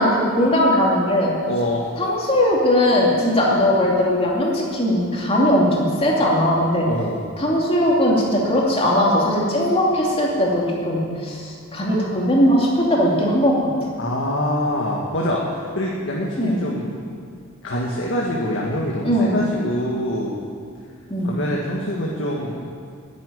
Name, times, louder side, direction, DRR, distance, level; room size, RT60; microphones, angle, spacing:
voice 1, 0.0-1.3 2.0-6.9 7.4-13.6 16.4-16.6 19.0-19.4 21.1-21.3, left 1 dB, 30° left, -3 dB, 2.7 m, -19 dB
voice 2, 1.5-1.9 6.9-7.3 14.0-16.9 17.6-20.4 21.2-22.6, left 1 dB, 60° left, -3 dB, 1.7 m, -25 dB
10.5 x 10.0 x 9.4 m, 2.2 s
head